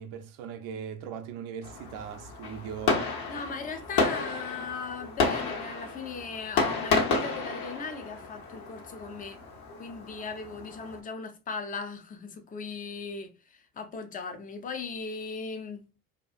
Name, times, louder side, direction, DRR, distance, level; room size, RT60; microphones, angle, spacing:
voice 1, 0.0-3.0, right 7 dB, 60° right, 0.6 m, -39 dB
Fireworks, 1.6-11.0, left 4 dB, 50° left, 0.9 m, -31 dB
voice 2, 3.3-9.4 9.8-15.9, left 4 dB, 20° left, 0.5 m, -38 dB
2.7 x 2.3 x 2.4 m
hypercardioid pair, 60°, 48 cm